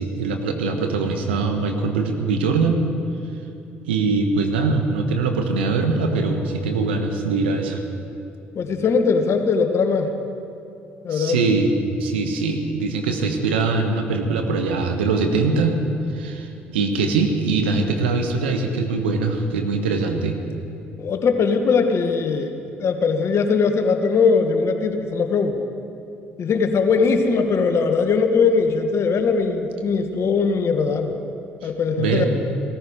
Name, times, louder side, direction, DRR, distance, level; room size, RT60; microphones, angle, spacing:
voice 1, 0.0-2.8 3.8-7.8 11.1-11.7 12.0-15.8 16.1-20.3 32.0-32.3, right 4 dB, 85° right, 4 dB, 1.3 m, -22 dB
voice 2, 8.5-10.1 11.0-11.4 21.0-22.5 22.8-25.6 26.4-31.1 31.6-32.3, left 5 dB, 55° left, 6 dB, 1.5 m, -20 dB
17.0 x 14.0 x 5.1 m, 2.7 s
hypercardioid pair, 55°, 6 cm